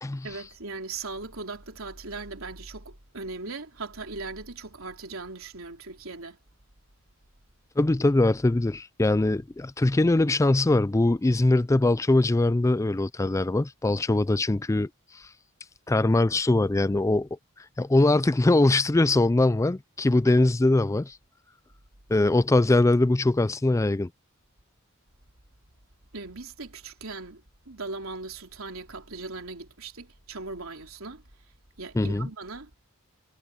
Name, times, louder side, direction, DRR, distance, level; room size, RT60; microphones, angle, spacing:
voice 1, 0.2-6.4 26.1-31.2 31.8-32.7, right 3 dB, 85° right, 3.4 m, -39 dB
voice 2, 7.8-14.9 15.1-15.2 15.9-17.3 17.8-21.2 22.1-24.1 32.0-32.3, left 2 dB, 15° left, 0.4 m, -22 dB
head